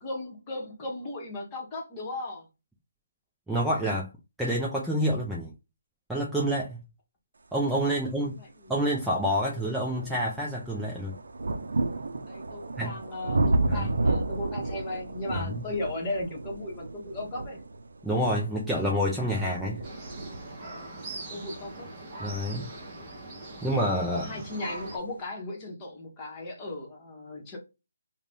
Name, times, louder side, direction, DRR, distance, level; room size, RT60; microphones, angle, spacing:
voice 1, 0.0-2.5 7.9-8.5 12.2-17.6 21.3-21.9 24.1-27.6, left 2 dB, 20° left, 0.9 m, -36 dB
voice 2, 3.5-4.1 4.4-5.5 6.1-6.8 7.5-8.4 8.7-11.2 12.8-13.0 13.7-13.9 15.3-15.6 18.0-19.8 22.2-22.7 23.6-24.4, equal, 5° right, 0.3 m, -28 dB
sound 1, 8.5-8.6 9.2-23.8 24.7-24.8, right 2 dB, 75° right, 0.4 m, -32 dB
sound 2, 19.8-25.0, right 2 dB, 20° right, 0.8 m, -41 dB
2.5 x 2.1 x 3.3 m
hypercardioid pair, 160°, 0 cm